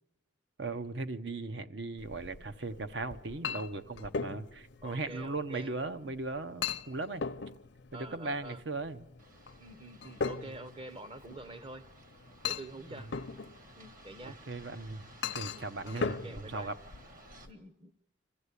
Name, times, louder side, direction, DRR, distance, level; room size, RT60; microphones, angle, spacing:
voice 1, 0.6-7.2 7.9-9.1 10.4-10.6 12.9-13.0 14.2-15.1 15.3-16.7, right 3 dB, 60° right, 11 dB, 0.9 m, -38 dB
Chink clink, 2.0-17.5, left 5 dB, 65° left, 0.6 m, -40 dB
voice 2, 4.8-5.8 7.9-8.6 9.6-11.8 12.4-13.1 13.8-14.4 15.3-16.7 17.5-17.9, right 2 dB, 30° right, 13 dB, 0.8 m, -47 dB
sound 1, 9.2-17.5, right 2 dB, 45° right, 1.9 m, -57 dB
26.0 x 14.5 x 8.3 m, 1.1 s
head